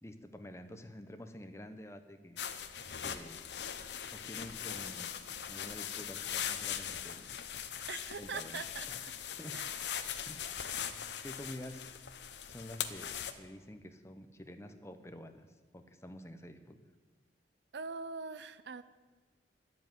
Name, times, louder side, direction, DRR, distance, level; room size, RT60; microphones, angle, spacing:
voice 1, 0.0-2.6 3.0-5.1 5.5-7.4 8.2-8.6 8.9-9.0 9.4-9.6 10.2-11.8 12.5-16.8, left 1 dB, 15° left, 8 dB, 0.9 m, -49 dB
sound 1, 2.4-13.3, left 9 dB, 70° left, 0.8 m, -40 dB
voice 2, 7.9-9.1 9.5-9.8 17.7-18.8, right 5 dB, 65° right, 14 dB, 0.5 m, -43 dB
11.5 x 7.9 x 9.2 m, 1.3 s
head